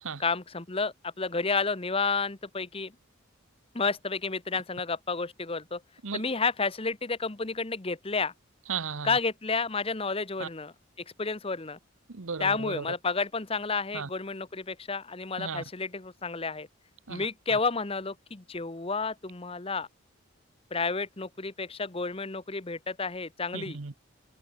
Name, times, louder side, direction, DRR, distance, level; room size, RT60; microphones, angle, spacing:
voice 1, 0.2-2.9 3.7-5.8 6.1-8.3 9.0-10.7 11.2-11.8 12.4-16.7 17.1-19.9 20.7-23.8, left 4 dB, 25° left, 1.0 m, -31 dB
voice 2, 8.7-9.2 10.4-10.5 12.1-12.8 13.9-14.1 15.4-15.6 17.1-17.6 23.5-23.9, right 5 dB, 70° right, 1.0 m, -36 dB
head